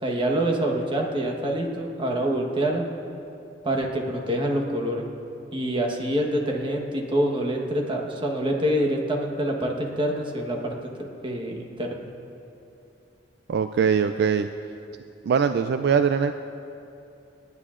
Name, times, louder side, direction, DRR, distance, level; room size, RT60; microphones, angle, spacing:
voice 1, 0.0-2.9 3.6-5.1 5.5-10.9 11.2-11.9, right 1 dB, 25° right, 1 dB, 1.2 m, -26 dB
voice 2, 13.5-14.5 15.2-16.3, right 6 dB, 60° right, 9 dB, 0.3 m, -22 dB
28.0 x 9.6 x 2.5 m, 2.8 s
head